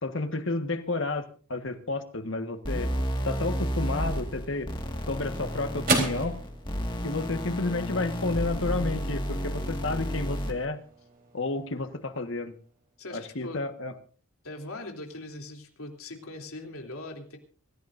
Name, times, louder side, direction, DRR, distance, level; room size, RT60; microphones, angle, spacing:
voice 1, 0.0-1.2 1.5-2.9 3.2-4.7 5.1-6.4 7.0-10.8 11.3-12.5 13.1-13.9, left 2 dB, 60° left, 8 dB, 1.5 m, -31 dB
sound 1, 2.6-10.6, equal, 20° left, 1.9 m, -32 dB
sound 2, 4.6-13.1, right 3 dB, 40° right, 4.0 m, -37 dB
voice 2, 13.0-13.6 14.4-17.4, left 2 dB, 80° left, 2 dB, 3.2 m, -41 dB
25.0 x 15.5 x 2.7 m, 0.41 s
head